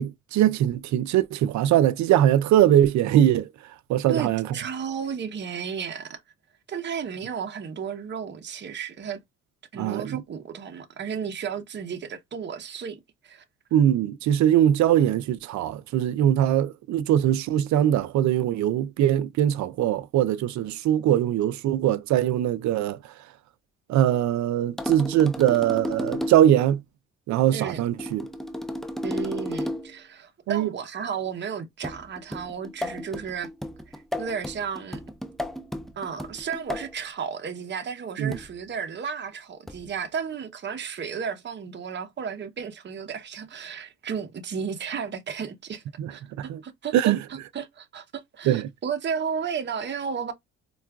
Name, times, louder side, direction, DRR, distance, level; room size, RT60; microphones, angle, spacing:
voice 1, 0.0-3.5 3.9-4.5 9.7-10.2 13.7-23.0 23.9-26.8 27.3-28.2 30.5-30.7 38.2-38.4 46.0-46.1 46.4-46.6 46.9-47.2 48.5-48.7, right 11 dB, 70° right, 0.5 m, -21 dB
voice 2, 4.1-6.2 6.7-9.2 9.7-13.4 27.5-27.8 29.0-33.5 33.9-35.0 36.0-45.8 46.1-46.2 46.6-50.3, right 6 dB, 35° right, 0.8 m, -33 dB
low distorted conga, 24.8-26.6 28.0-30.0 31.8-37.0 38.3-38.7 39.7-40.0, left 1 dB, ahead, 0.4 m, -34 dB
4.5 x 2.4 x 2.3 m
cardioid pair, 90°, 30 cm